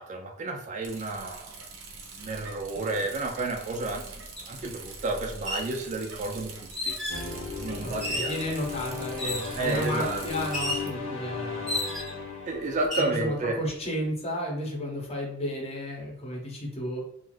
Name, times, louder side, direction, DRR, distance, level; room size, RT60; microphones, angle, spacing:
voice 1, 0.0-1.6 2.1-4.0 4.5-6.5 6.8-7.0 7.6-8.4 9.6-10.2 12.5-13.6, right 2 dB, 35° right, 3 dB, 0.3 m, -31 dB
Bicycle, 0.8-10.9, right 3 dB, 70° right, 0.6 m, -43 dB
sound 1, 4.4-4.5 5.3-5.7 6.7-7.3 8.0-8.4 9.2-9.6 10.5-10.9 11.7-12.2 12.8-13.1, left 1 dB, ahead, 0.8 m, -32 dB
sound 2, 7.1-13.5, left 5 dB, 70° left, 0.7 m, -37 dB
voice 2, 7.8-11.7 12.9-17.0, left 1 dB, 30° left, -2 dB, 0.8 m, -33 dB
2.5 x 2.3 x 3.2 m, 0.74 s
head